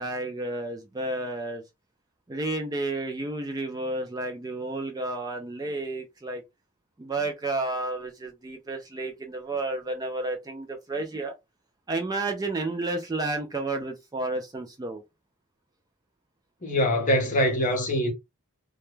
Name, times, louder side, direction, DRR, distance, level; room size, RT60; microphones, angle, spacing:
voice 1, 0.0-1.6 2.3-6.4 7.0-11.4 11.9-15.0, right 2 dB, 15° right, 0.3 m, -31 dB
voice 2, 16.6-18.1, equal, 35° left, 0.7 m, -23 dB
2.2 x 2.1 x 3.1 m
head